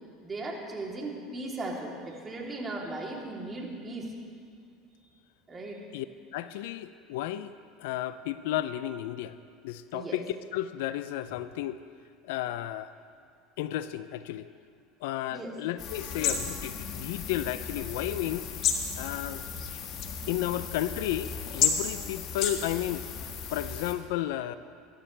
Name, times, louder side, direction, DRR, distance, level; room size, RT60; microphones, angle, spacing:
voice 1, 0.2-4.1 5.5-5.9 9.9-10.2 15.3-15.6, right 2 dB, 25° right, -2 dB, 3.2 m, -37 dB
voice 2, 6.3-7.5 7.8-9.4 9.6-10.2 10.5-11.8 12.2-12.9 13.6-14.5 15.0-18.5 19.0-19.4 20.3-23.0 23.5-24.6, left 13 dB, 75° left, 13 dB, 0.5 m, -33 dB
sound 1, 15.8-23.9, left 7 dB, 50° left, 1.6 m, -33 dB
22.0 x 12.0 x 3.4 m, 2.2 s
supercardioid pair, 100°, 0 cm